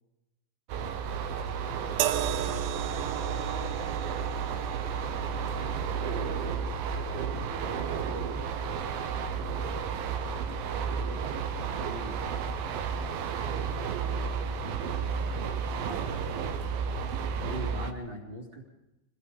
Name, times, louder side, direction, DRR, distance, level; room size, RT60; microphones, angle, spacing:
sound 1, 0.7-17.9, right 6 dB, 65° right, 2.7 m, -32 dB
voice 1, 1.6-3.9 6.8-8.3, left 1 dB, 25° left, 0 dB, 3.4 m, -47 dB
sound 2, 2.0-15.3 16.3-16.5, right 12 dB, 90° right, 3.3 m, -40 dB
voice 2, 5.1-5.7 11.6-12.4 14.0-16.7 17.4-18.6, right 1 dB, 30° right, 1 dB, 3.4 m, -43 dB
25.5 x 20.5 x 5.3 m, 0.94 s
omnidirectional pair, 5.1 m